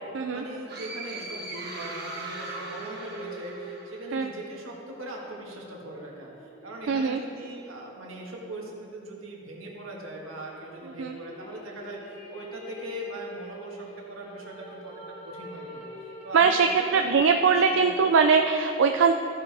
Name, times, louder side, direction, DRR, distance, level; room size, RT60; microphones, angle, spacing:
voice 1, 0.3-15.9 16.2-17.9, right 1 dB, 85° right, -2 dB, 1.7 m, -40 dB
sound 1, 0.6-8.3 10.1-17.5, right 1 dB, 30° left, 1.5 m, -46 dB
sound 2, 0.7-4.3, right 2 dB, 50° right, 1.3 m, -39 dB
voice 2, 6.9-7.2 11.0-11.2 16.3-19.1, right 5 dB, 70° right, 5 dB, 0.4 m, -21 dB
14.0 x 7.6 x 3.4 m, 2.9 s
head